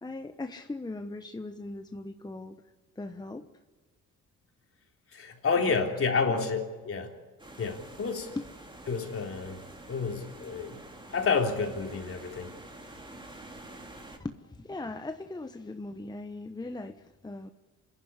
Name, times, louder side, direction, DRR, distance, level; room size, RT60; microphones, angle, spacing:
voice 1, 0.0-2.6 3.0-3.5 5.7-5.9 6.3-6.5 8.4-8.5 14.2-17.5, left 2 dB, 15° left, 7 dB, 1.0 m, -39 dB
voice 2, 5.1-7.1 7.6-8.3 8.9-10.8 11.1-12.5, left 4 dB, 45° left, 3 dB, 3.5 m, -30 dB
sound 1, 7.4-14.2, right 2 dB, 15° right, 3.0 m, -47 dB
27.0 x 11.0 x 9.8 m, 1.4 s
cardioid pair, 90°, 30 cm